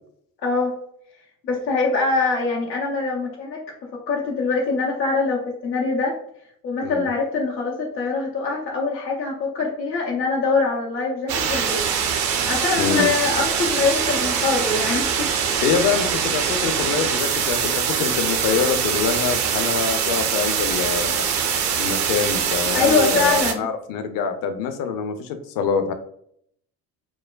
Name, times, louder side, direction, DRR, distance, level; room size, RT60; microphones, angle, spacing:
voice 1, 0.4-0.7 1.4-3.6 4.1-6.1 6.6-11.8 12.5-15.8 21.7-21.8 22.7-23.7, left 4 dB, 85° left, -3 dB, 0.7 m, -23 dB
sound 1, 11.3-23.5, right 7 dB, 35° right, 0.5 m, -23 dB
voice 2, 12.8-13.1 15.6-21.2 21.8-25.9, left 6 dB, 45° left, 8 dB, 0.6 m, -25 dB
4.6 x 2.1 x 2.3 m, 0.68 s
figure-of-eight pair, 60°, 49 cm